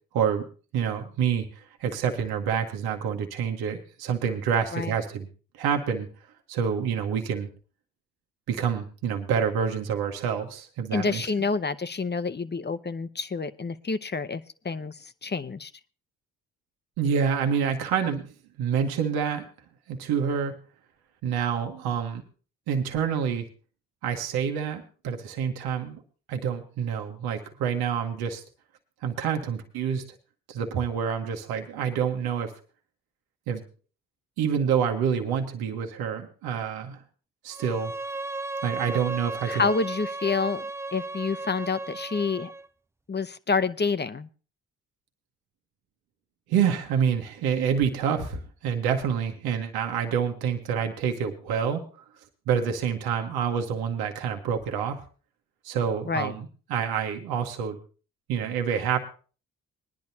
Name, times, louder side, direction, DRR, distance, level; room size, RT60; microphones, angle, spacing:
voice 1, 0.1-0.4 0.7-5.3 5.5-6.1 6.5-7.5 8.5-11.2 17.0-18.3 18.6-19.4 19.9-20.5 21.2-22.2 22.7-23.5 24.0-26.0 26.3-28.4 29.0-30.0 30.5-32.5 33.5-33.6 34.4-37.0 37.4-37.9 38.6-39.6 46.5-52.0 52.5-55.0 55.6-57.8 58.3-59.0, right 7 dB, 80° right, 4 dB, 1.4 m, -27 dB
voice 2, 10.9-15.7 39.5-42.5 43.1-44.3 56.1-56.4, left 4 dB, 30° left, 13 dB, 0.9 m, -28 dB
Bowed string instrument, 37.5-42.7, right 2 dB, 5° right, 0.5 m, -35 dB
20.5 x 10.5 x 2.8 m, 0.36 s
hypercardioid pair, 45°, 37 cm